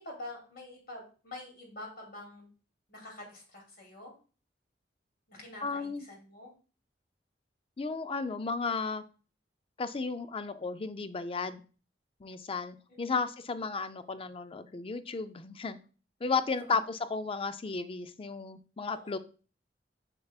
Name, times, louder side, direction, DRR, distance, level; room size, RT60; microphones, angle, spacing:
voice 1, 0.0-2.5 2.9-4.1 5.3-6.5 13.0-13.2 18.9-19.2, left 2 dB, 55° left, -1 dB, 2.7 m, -46 dB
voice 2, 5.6-6.0 7.8-9.0 9.8-11.6 12.2-15.8 16.2-19.2, left 4 dB, 30° left, 11 dB, 0.4 m, -34 dB
6.9 x 6.7 x 2.4 m, 0.37 s
head